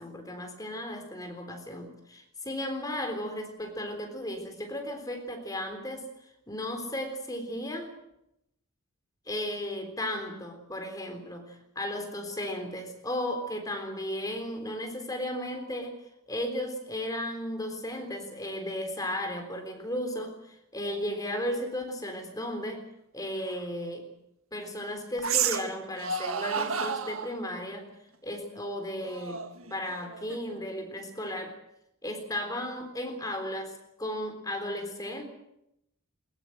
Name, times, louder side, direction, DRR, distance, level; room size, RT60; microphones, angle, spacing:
voice 1, 0.0-6.1 6.5-7.9 9.3-16.0 16.3-22.9 23.1-24.1 24.5-27.9 28.2-31.6 32.0-35.2, left 1 dB, 15° left, 5 dB, 3.7 m, -35 dB
sound 1, 23.5-23.6 25.2-25.7 26.0-27.4 29.0-30.6, right 6 dB, 75° right, 1.7 m, -31 dB
22.0 x 21.5 x 7.9 m, 0.82 s
head